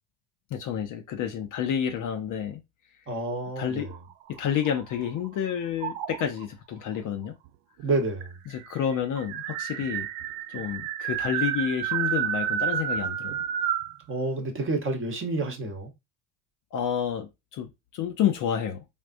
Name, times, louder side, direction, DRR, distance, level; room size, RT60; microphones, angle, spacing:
voice 1, 0.5-2.6 3.6-3.9 4.4-7.4 8.5-10.1 10.5-13.4 16.7-18.8, left 8 dB, 40° left, 0.6 m, -29 dB
voice 2, 3.1-3.9 7.8-8.4 14.1-15.9, right 2 dB, 25° right, 0.9 m, -29 dB
sound 1, 3.8-5.3 5.8-6.4 7.4-7.5 7.8-7.9 8.2-14.0, right 10 dB, 55° right, 0.5 m, -30 dB
3.5 x 2.4 x 2.5 m
hypercardioid pair, 65°, 48 cm